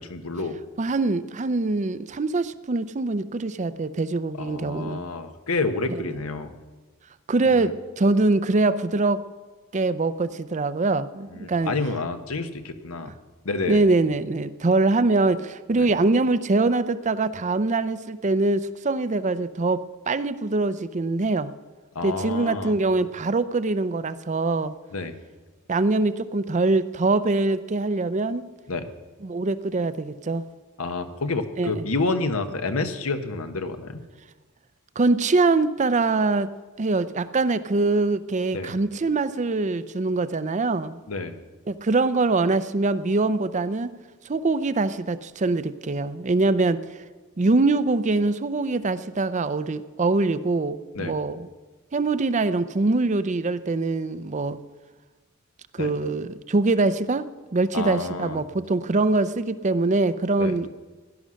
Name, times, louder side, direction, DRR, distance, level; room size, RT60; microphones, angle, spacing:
voice 1, 0.0-0.6 4.4-6.5 7.5-7.7 11.3-13.1 13.4-13.8 15.7-15.9 21.9-22.7 24.9-25.2 28.7-28.9 30.8-34.0 38.5-38.7 41.1-41.3 50.9-51.2 55.8-55.9 57.7-58.4 60.4-60.6, left 3 dB, 80° left, 8 dB, 1.1 m, -29 dB
voice 2, 0.8-5.0 7.3-9.2 9.7-11.7 13.7-21.5 22.0-24.8 25.7-28.4 29.2-30.4 31.6-31.9 35.0-36.5 36.8-41.0 41.7-43.9 44.2-46.8 47.4-51.5 51.9-54.6 55.7-57.3 57.5-60.7, right 3 dB, 35° right, 13 dB, 0.5 m, -23 dB
16.5 x 11.0 x 6.4 m, 1.3 s
head